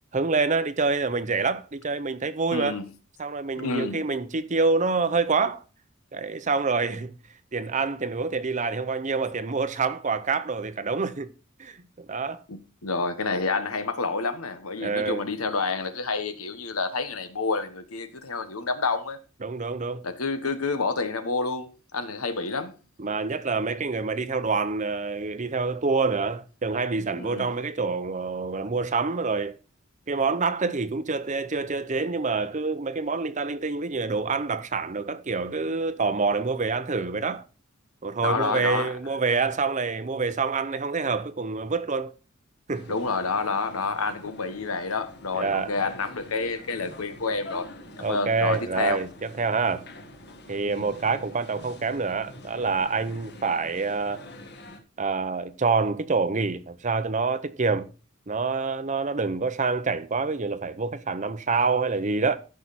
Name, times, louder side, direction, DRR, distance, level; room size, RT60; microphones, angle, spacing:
voice 1, 0.1-2.8 3.2-5.6 6.1-7.2 7.5-11.3 11.6-12.4 14.8-15.2 19.4-20.0 23.0-29.6 30.1-37.4 38.0-42.1 42.7-43.0 45.3-45.7 48.0-49.8 50.5-54.2 55.0-57.9 58.3-62.4, right 4 dB, 35° right, 0.7 m, -27 dB
voice 2, 2.5-2.8 3.6-4.0 12.5-19.2 20.0-22.7 27.2-27.5 38.2-38.9 42.9-47.7 48.0-49.0 50.6-50.9, left 4 dB, 90° left, 1.3 m, -29 dB
sound 1, 42.7-54.8, left 1 dB, 50° left, 1.6 m, -46 dB
14.0 x 5.8 x 4.1 m
head